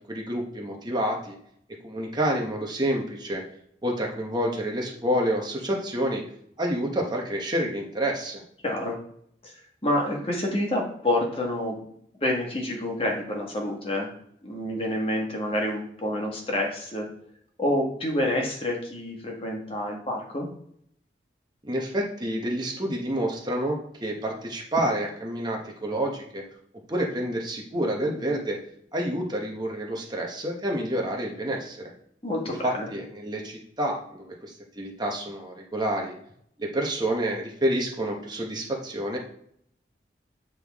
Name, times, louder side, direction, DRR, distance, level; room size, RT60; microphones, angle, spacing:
voice 1, 0.1-1.4 1.8-3.4 3.8-6.2 6.6-8.4 21.6-26.5 26.9-28.6 28.9-31.9 32.6-36.1 36.6-39.2, right 1 dB, 25° right, 0 dB, 1.1 m, -28 dB
voice 2, 8.6-9.0 9.4-9.5 9.8-11.8 12.2-14.1 14.4-17.1 17.6-20.5 32.2-32.9, left 1 dB, 30° left, 0 dB, 1.4 m, -28 dB
8.1 x 3.7 x 3.6 m, 0.69 s
head